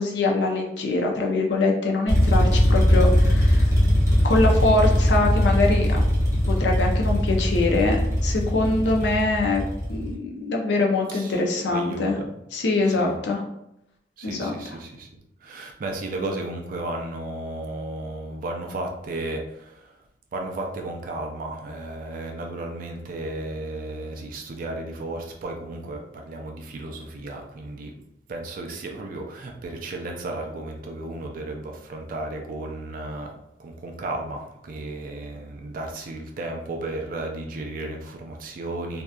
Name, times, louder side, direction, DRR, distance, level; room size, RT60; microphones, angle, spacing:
voice 1, 0.0-3.7 4.2-6.0 6.5-9.6 9.9-12.2 12.5-13.4 14.2-14.6, left 2 dB, 75° left, 1 dB, 0.5 m, -23 dB
sound 1, 2.1-10.1, equal, 15° right, 0.8 m, -20 dB
voice 2, 8.6-8.9 11.1-11.4 11.7-12.3 12.9-13.2 14.2-15.1 15.4-20.0 20.3-27.9 28.3-33.3 33.6-39.0, right 2 dB, 50° right, 2 dB, 0.4 m, -34 dB
2.7 x 2.2 x 2.3 m, 0.81 s
head